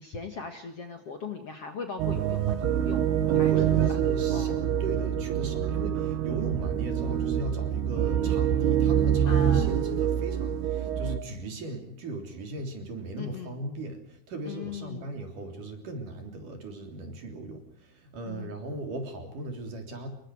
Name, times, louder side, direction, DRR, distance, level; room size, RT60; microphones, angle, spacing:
voice 1, 0.0-3.8 4.3-4.6 9.3-9.7 13.2-13.6 14.4-15.1 18.3-18.6, left 5 dB, 50° left, 5 dB, 2.1 m, -39 dB
sound 1, 2.0-11.2, right 9 dB, 85° right, 3.3 m, -26 dB
voice 2, 3.3-20.1, right 2 dB, 55° right, 4 dB, 4.9 m, -38 dB
28.0 x 23.0 x 4.9 m, 0.73 s
omnidirectional pair, 4.5 m